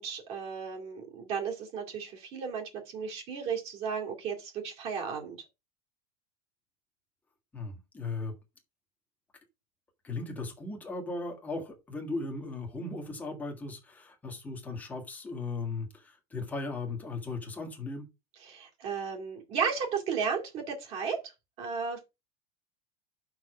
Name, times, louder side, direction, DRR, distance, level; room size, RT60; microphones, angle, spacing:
voice 1, 0.0-5.4 18.4-21.3 21.6-22.0, right 6 dB, 30° right, 2.2 m, -34 dB
voice 2, 7.5-8.3 10.0-18.1, left 3 dB, 10° left, 1.6 m, -37 dB
5.7 x 4.8 x 6.1 m
supercardioid pair, 180°, 19 cm